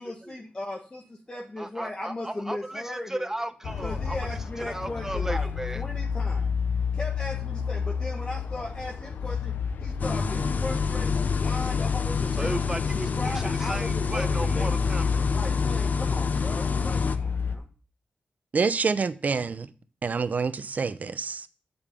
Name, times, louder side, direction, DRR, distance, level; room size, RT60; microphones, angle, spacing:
voice 1, 0.0-3.3 3.8-5.5 5.7-6.6 6.9-9.5 9.8-12.6 12.9-14.7 15.3-17.7, left 1 dB, 30° left, 0 dB, 1.4 m, -37 dB
voice 2, 1.6-2.8 3.1-5.8 12.4-15.2, right 1 dB, 15° right, 10 dB, 0.9 m, -35 dB
sound 1, 3.6-17.6, left 6 dB, 90° left, 0.7 m, -30 dB
sound 2, 10.0-17.2, left 4 dB, 55° left, 0.7 m, -29 dB
voice 3, 18.5-19.7 20.0-21.5, right 5 dB, 55° right, 13 dB, 0.7 m, -27 dB
7.1 x 5.4 x 6.7 m, 0.39 s
cardioid pair, 75°, 3 cm